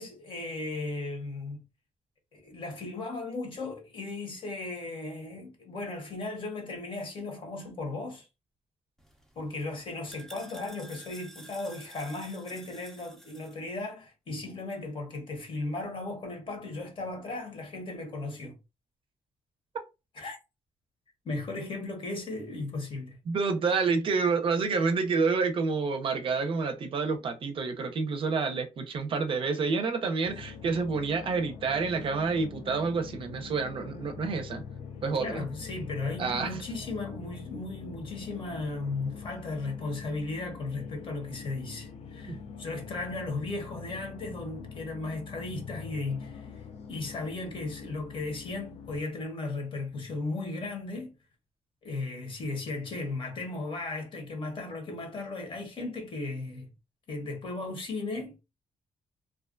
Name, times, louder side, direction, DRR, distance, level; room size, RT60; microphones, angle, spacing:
voice 1, 0.0-1.6 2.3-8.3 9.4-18.6 20.1-20.4 21.2-23.2 35.1-51.1 51.8-56.7 57.1-58.4, left 3 dB, 50° left, 0.9 m, -36 dB
sound 1, 9.0-13.6, right 1 dB, 5° left, 0.5 m, -51 dB
voice 2, 23.3-34.6 35.0-35.4 36.2-36.6 42.3-42.4, right 4 dB, 50° right, 0.5 m, -28 dB
sound 2, 30.2-49.0, left 6 dB, 65° left, 0.4 m, -44 dB
2.4 x 2.2 x 2.4 m
cardioid pair, 120°, 12 cm